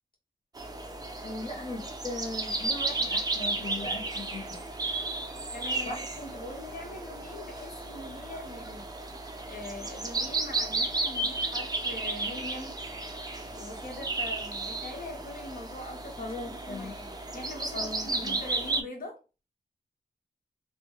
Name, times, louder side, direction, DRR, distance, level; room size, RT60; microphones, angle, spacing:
sound 1, 0.5-18.8, right 2 dB, 25° right, 0.5 m, -33 dB
voice 1, 1.2-4.6 5.1-5.2 5.8-6.0 16.2-17.0 17.7-18.4, left 2 dB, 40° left, 0.7 m, -38 dB
voice 2, 5.5-8.8 9.5-12.8 13.5-19.2, left 2 dB, 65° left, 1.3 m, -42 dB
3.0 x 2.1 x 3.0 m
wide cardioid pair, 130°, 16 cm